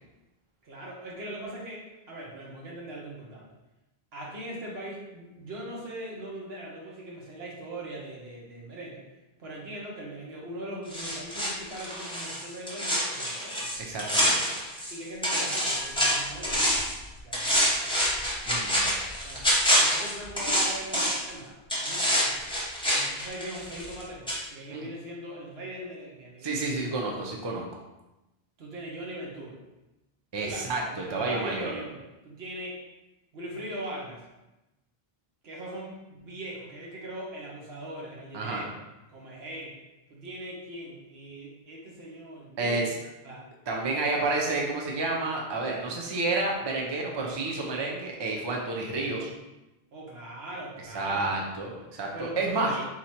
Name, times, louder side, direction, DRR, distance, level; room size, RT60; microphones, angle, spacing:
voice 1, 0.6-3.5 4.1-9.0 9.4-13.7 14.9-16.7 17.2-17.9 19.2-19.5 19.8-22.4 22.9-27.0 28.6-29.6 30.4-32.8 33.3-34.2 35.4-38.7 39.1-39.8 40.1-42.9 43.2-43.4 43.8-44.2 49.9-51.3 52.1-52.9, right 1 dB, 75° right, -3 dB, 1.3 m, -40 dB
sound 1, 10.9-15.0 15.2-17.0 17.3-21.3 21.7-24.0 24.3-24.4, equal, 5° left, 0.8 m, -26 dB
voice 2, 13.8-14.4 18.5-18.9 24.7-24.9 26.4-27.6 30.3-31.7 38.3-38.6 42.6-42.9 43.7-49.3 50.9-52.7, right 3 dB, 30° right, -1 dB, 0.6 m, -30 dB
3.8 x 3.0 x 4.3 m, 1.0 s
omnidirectional pair, 1.0 m